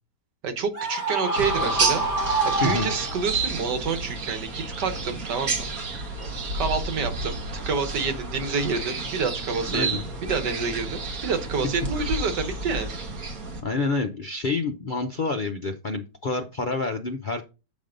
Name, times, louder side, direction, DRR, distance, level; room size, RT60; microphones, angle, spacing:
voice 1, 0.4-2.1 2.4-5.7 6.5-7.4 7.7-13.0, right 5 dB, 90° right, 7 dB, 1.8 m, -28 dB
Screaming, 0.7-3.4, right 2 dB, 30° right, 3.1 m, -26 dB
sound 1, 1.4-13.6, right 3 dB, 60° right, 1.8 m, -31 dB
voice 2, 2.5-2.9 9.7-10.0 13.6-17.4, left 3 dB, 55° left, 4 dB, 0.5 m, -28 dB
8.3 x 5.3 x 3.8 m, 0.30 s
omnidirectional pair, 1.8 m